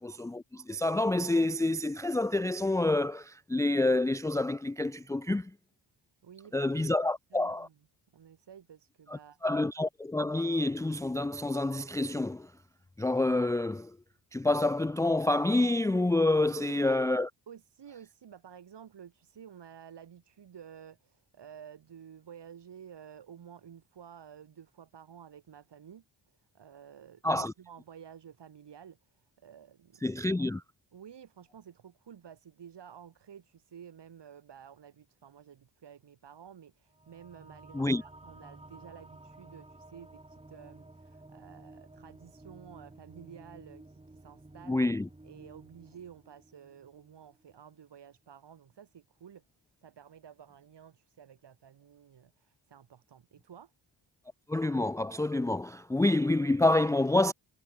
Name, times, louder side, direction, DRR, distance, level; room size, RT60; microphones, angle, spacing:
voice 1, 0.0-5.5 6.5-7.7 9.1-12.5 13.0-14.0 14.3-17.3 27.2-27.5 30.0-30.6 37.7-38.0 44.7-45.1 54.5-57.3, left 2 dB, 5° left, 0.5 m, -28 dB
voice 2, 6.2-7.7 8.1-9.4 16.5-17.0 17.5-30.5 30.9-44.8 45.2-49.4 49.8-53.7, right 8 dB, 65° right, 5.0 m, -52 dB
sound 1, 36.9-47.8, right 2 dB, 10° right, 3.0 m, -53 dB
cardioid pair, 75°, 45 cm